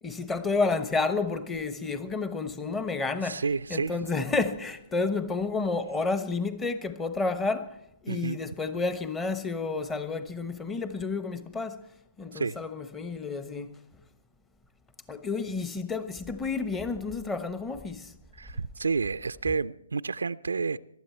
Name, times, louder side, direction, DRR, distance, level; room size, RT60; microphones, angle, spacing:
voice 1, 0.0-3.4 3.7-7.8 8.0-11.9 12.2-13.8 15.1-18.1, left 3 dB, 10° left, 1.0 m, -30 dB
voice 2, 3.2-4.0 8.1-8.4 12.3-12.6 18.4-20.8, right 4 dB, 75° right, 0.5 m, -30 dB
22.0 x 12.5 x 4.4 m
figure-of-eight pair, 135°, 0 cm